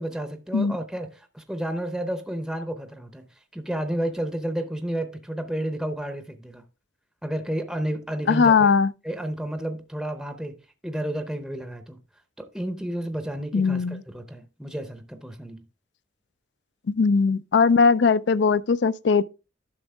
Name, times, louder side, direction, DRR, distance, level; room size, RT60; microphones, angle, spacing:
voice 1, 0.0-3.3 3.5-6.6 7.2-8.7 9.0-12.0 12.4-15.6, right 1 dB, ahead, 0.7 m, -31 dB
voice 2, 8.3-8.9 13.5-14.0 16.9-19.2, left 5 dB, 65° left, 0.4 m, -19 dB
11.0 x 6.2 x 3.4 m
head